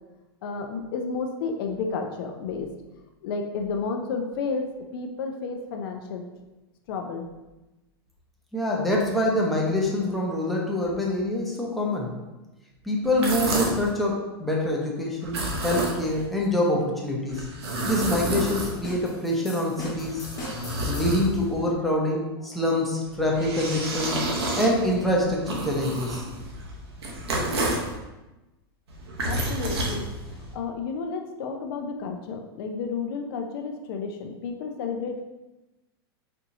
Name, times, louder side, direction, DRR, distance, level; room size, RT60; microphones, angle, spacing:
voice 1, 0.4-2.7 3.2-4.6 4.9-6.2 6.9-7.3 22.1-22.2 22.5-22.6 29.3-30.0 30.3-35.2, left 5 dB, 65° left, 3 dB, 0.5 m, -31 dB
voice 2, 8.5-12.1 12.8-17.5 17.8-20.3 20.9-24.2 24.6-26.2, left 1 dB, ahead, -3 dB, 0.7 m, -25 dB
sound 1, 13.0-13.9 15.2-16.3 17.3-19.1 19.8-21.6 23.0-27.9 28.9-30.5, right 1 dB, 90° right, 0.9 m, -30 dB
sound 2, 18.1-21.4, equal, 25° left, 1.2 m, -40 dB
4.4 x 2.7 x 2.6 m, 1.0 s
hypercardioid pair, 125°, 13 cm